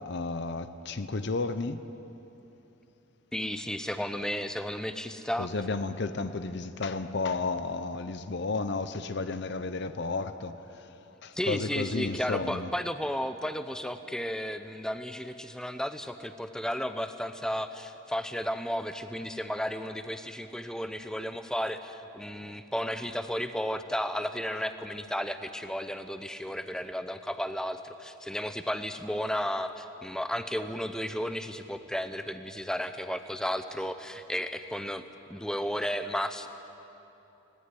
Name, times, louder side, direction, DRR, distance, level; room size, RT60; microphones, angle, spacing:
voice 1, 0.0-1.9 5.4-10.9 11.2-12.7, left 3 dB, 55° left, 11 dB, 0.7 m, -32 dB
voice 2, 3.3-5.5 11.3-36.5, equal, 5° left, 9 dB, 0.7 m, -33 dB
18.5 x 17.5 x 9.8 m, 3.0 s
head